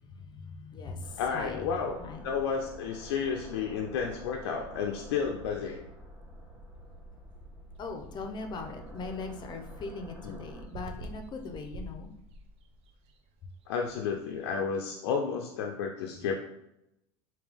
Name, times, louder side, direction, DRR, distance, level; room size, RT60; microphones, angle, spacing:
voice 1, 0.0-1.7 2.0-2.3 7.8-12.2, left 3 dB, 35° left, 6 dB, 0.6 m, -40 dB
sound 1, 1.0-10.6, equal, 10° right, 1.0 m, -48 dB
voice 2, 1.2-2.0 2.2-5.8 10.2-10.4 13.7-16.3, left 6 dB, 85° left, 2 dB, 0.5 m, -32 dB
sound 2, 7.8-14.5, equal, 50° right, 0.5 m, -48 dB
3.5 x 2.8 x 3.4 m, 0.83 s
supercardioid pair, 110°, 13 cm